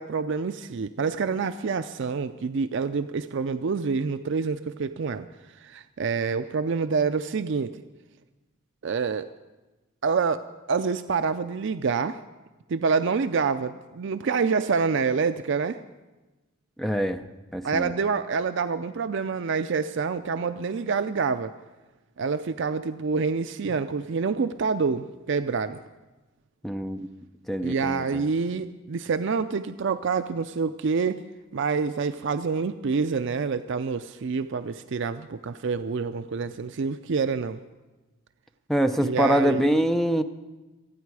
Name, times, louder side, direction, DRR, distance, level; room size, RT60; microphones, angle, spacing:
voice 1, 0.0-5.3 5.6-7.8 8.8-9.3 10.0-10.4 10.7-12.2 12.7-15.8 17.6-21.5 22.2-25.8 27.6-31.2 31.5-37.6 39.0-39.8, right 5 dB, 60° right, 9 dB, 0.4 m, -27 dB
voice 2, 16.8-17.3 17.5-17.9 26.6-27.1 27.5-28.2 38.7-40.2, equal, ahead, 7 dB, 0.6 m, -24 dB
27.5 x 9.3 x 4.8 m, 1.1 s
head